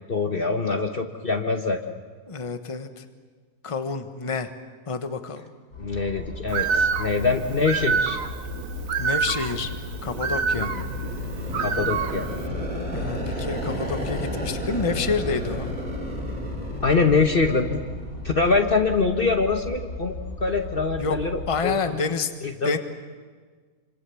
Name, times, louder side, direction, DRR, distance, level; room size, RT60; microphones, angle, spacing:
voice 1, 0.1-1.8 5.8-8.2 10.6-10.8 11.6-12.3 16.8-17.8 18.2-22.0 22.4-22.8, left 4 dB, 40° left, 5 dB, 1.3 m, -24 dB
voice 2, 2.3-3.0 3.6-4.5 4.9-5.5 9.0-9.7 10.0-10.7 12.9-15.7 21.0-21.2 21.5-22.3 22.6-22.8, left 4 dB, 25° left, 8 dB, 1.2 m, -28 dB
sound 1, 5.7-21.6, left 2 dB, 80° left, 5.6 m, -36 dB
Bird, 6.5-12.5, right 6 dB, 65° right, 1.4 m, -28 dB
sound 2, 9.2-18.9, equal, 30° right, 3.9 m, -33 dB
27.0 x 25.5 x 7.1 m, 1.5 s
omnidirectional pair, 1.6 m